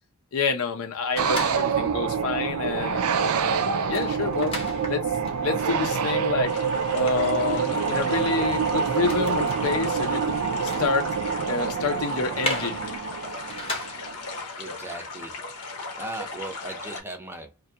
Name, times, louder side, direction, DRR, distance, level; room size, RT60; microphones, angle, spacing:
voice 1, 0.3-4.5 4.9-5.0 5.4-6.5 6.9-10.3 10.6-11.1 11.5-12.9, left 4 dB, 70° left, 0.6 m, -28 dB
sound 1, 1.1-2.1 2.5-2.7 3.0-14.3, left 2 dB, 25° left, 0.7 m, -38 dB
sound 2, 1.2-14.1, right 6 dB, 75° right, 0.4 m, -26 dB
sound 3, 6.4-17.0, left 3 dB, 85° left, 0.9 m, -37 dB
voice 2, 14.6-15.4 15.9-17.5, right 2 dB, 10° right, 0.5 m, -37 dB
2.5 x 2.3 x 2.7 m
head